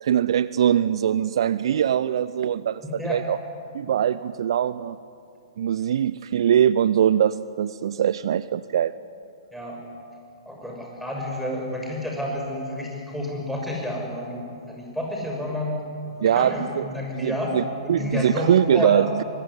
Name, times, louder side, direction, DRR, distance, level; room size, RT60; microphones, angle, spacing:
voice 1, 0.0-3.4 3.7-5.0 5.6-8.9 16.2-16.8 17.1-17.6 17.9-19.2, right 9 dB, 55° right, 16 dB, 0.6 m, -22 dB
voice 2, 2.8-3.2 9.5-9.8 10.4-14.4 14.7-15.8 16.2-17.5 17.8-19.1, left 1 dB, ahead, -1 dB, 6.5 m, -30 dB
24.5 x 21.0 x 9.8 m, 2.5 s
figure-of-eight pair, 115°, 3 cm